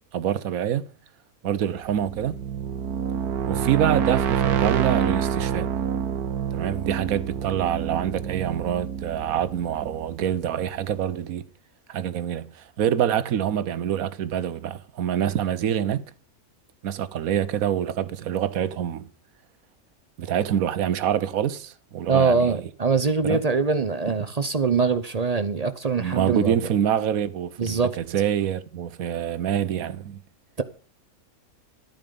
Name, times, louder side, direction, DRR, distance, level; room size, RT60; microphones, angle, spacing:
voice 1, 0.1-0.9 1.4-2.4 3.5-5.7 6.5-11.5 11.9-16.0 16.8-19.1 20.2-22.6 23.2-23.4 26.0-30.2, right 10 dB, 75° right, 1.2 m, -26 dB
sound 1, 1.8-10.6, right 8 dB, 90° right, 1.4 m, -27 dB
voice 2, 22.1-26.6 27.6-28.0, right 4 dB, 40° right, 0.6 m, -23 dB
13.0 x 9.2 x 5.2 m
omnidirectional pair, 1.5 m